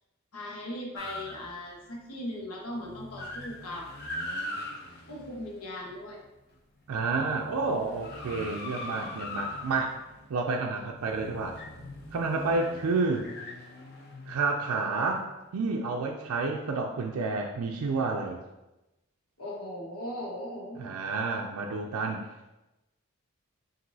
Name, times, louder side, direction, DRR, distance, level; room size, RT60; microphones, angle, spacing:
voice 1, 0.3-3.9 5.1-6.2 19.4-20.9, left 1 dB, 85° left, -1 dB, 1.0 m, -38 dB
sound 1, 1.0-2.0 2.4-2.5 2.7-6.3 6.8-15.3, left 1 dB, 45° left, 0.7 m, -41 dB
voice 2, 6.9-9.9 10.3-11.6 12.1-13.3 14.3-15.3 15.5-18.4 20.8-22.2, right 3 dB, 85° right, 1 dB, 0.4 m, -30 dB
5.9 x 2.6 x 2.7 m, 0.99 s
head